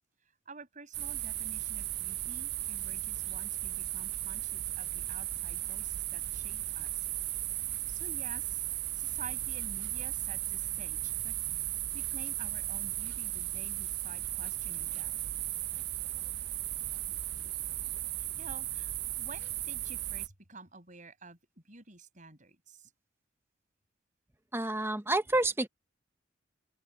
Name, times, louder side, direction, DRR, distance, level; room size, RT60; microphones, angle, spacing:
voice 1, 0.5-6.9 7.9-8.4 9.0-11.4 11.9-15.1 18.4-21.4 21.7-22.6, right 3 dB, 45° right, 5.7 m, -50 dB
sound 1, 0.9-20.3, right 14 dB, 60° right, 0.5 m, -36 dB
voice 2, 24.5-25.7, right 2 dB, 15° right, 0.9 m, -29 dB
open air
head